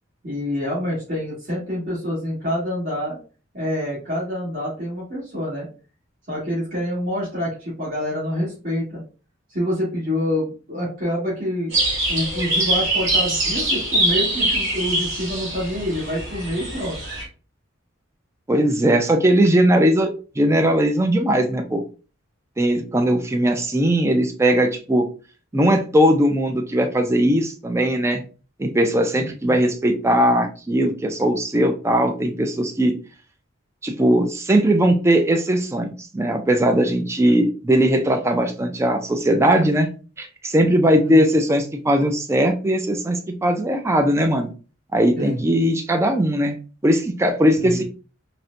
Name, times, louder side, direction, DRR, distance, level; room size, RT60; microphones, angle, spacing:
voice 1, 0.2-3.2 3.5-5.7 6.3-9.0 9.5-11.7 12.1-17.0 29.1-29.5 41.0-41.3 45.2-45.4 47.5-47.8, left 1 dB, 45° right, -10 dB, 1.7 m, -27 dB
sound 1, 11.7-17.2, right 1 dB, 65° right, 1.5 m, -23 dB
voice 2, 18.5-21.8 22.6-25.1 25.5-28.2 28.6-32.9 33.8-39.9 40.2-44.5 44.9-46.6 46.8-47.8, right 1 dB, 15° right, 5 dB, 0.4 m, -19 dB
4.1 x 2.1 x 2.5 m, 0.36 s
head